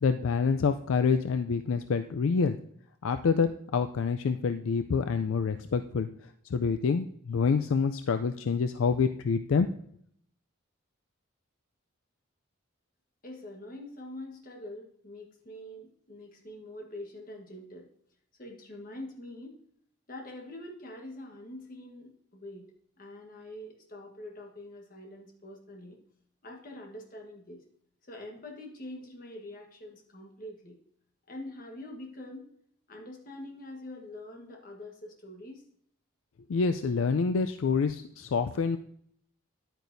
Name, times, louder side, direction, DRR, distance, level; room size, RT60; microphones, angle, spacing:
voice 1, 0.0-2.6 3.0-6.1 6.5-9.7 36.5-38.8, left 5 dB, 85° left, 9 dB, 0.4 m, -27 dB
voice 2, 13.2-17.9 18.4-19.6 20.1-22.7 23.0-26.0 26.4-27.6 28.0-30.8 31.3-32.5 32.9-35.6, left 1 dB, 45° left, 1 dB, 1.4 m, -44 dB
10.5 x 9.0 x 2.6 m, 0.66 s
head